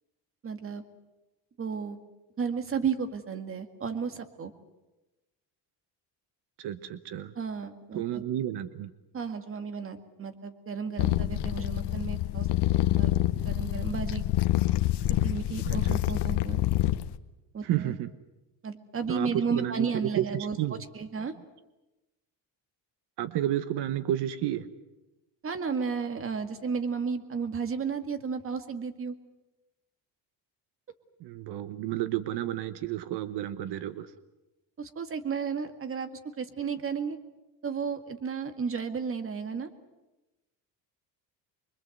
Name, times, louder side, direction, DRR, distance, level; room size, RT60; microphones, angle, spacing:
voice 1, 0.4-0.8 1.6-2.0 2.4-4.5 7.4-8.2 9.1-12.5 12.7-13.1 13.4-14.2 15.2-16.6 17.5-17.9 18.6-20.6 20.9-21.3 25.4-29.2 34.8-36.1 36.4-37.2 37.6-39.7, right 6 dB, 30° right, 8 dB, 2.0 m, -33 dB
voice 2, 6.6-7.3 7.9-8.9 15.6-16.0 17.6-18.1 19.1-19.9 20.2-20.8 23.2-24.7 31.2-34.1, right 12 dB, 75° right, 12 dB, 1.2 m, -31 dB
sound 1, 11.0-17.2, left 15 dB, 75° left, 1.1 m, -27 dB
25.5 x 23.5 x 7.9 m, 1.0 s
cardioid pair, 145°, 40 cm